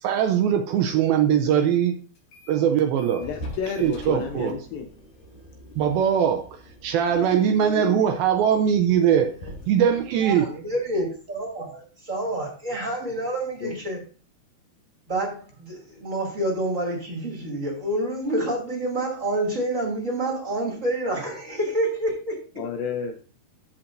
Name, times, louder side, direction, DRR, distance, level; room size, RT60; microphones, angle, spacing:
voice 1, 0.0-1.9 2.5-3.2 3.8-4.6 5.8-9.3 9.7-10.6, right 8 dB, 80° right, 6 dB, 2.3 m, -21 dB
sound 1, 2.2-2.7 3.0-11.4, equal, 55° left, 4.4 m, -44 dB
voice 2, 3.2-4.9 13.6-13.8 22.6-23.2, left 6 dB, 75° left, 5 dB, 2.2 m, -31 dB
voice 3, 10.2-14.0 15.1-22.3, right 1 dB, 25° right, -1 dB, 2.0 m, -28 dB
14.5 x 5.7 x 2.6 m, 0.38 s
omnidirectional pair, 4.7 m